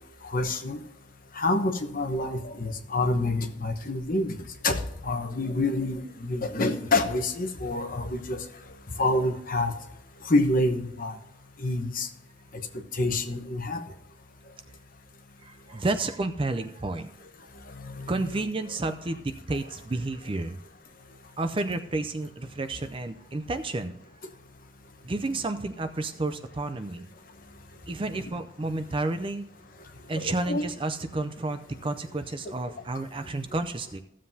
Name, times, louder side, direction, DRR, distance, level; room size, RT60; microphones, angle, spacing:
voice 1, 0.3-0.8 1.4-4.3 4.6-8.4 9.0-9.7 10.3-11.1 11.6-12.1 12.9-13.8 17.8-18.5 30.1-30.7, left 2 dB, 40° left, 5 dB, 1.1 m, -27 dB
voice 2, 15.4-17.1 18.1-20.5 21.4-23.9 25.0-27.1 27.9-29.5 30.1-34.0, right 2 dB, 25° right, 9 dB, 0.5 m, -31 dB
14.5 x 7.5 x 2.8 m, 0.82 s
head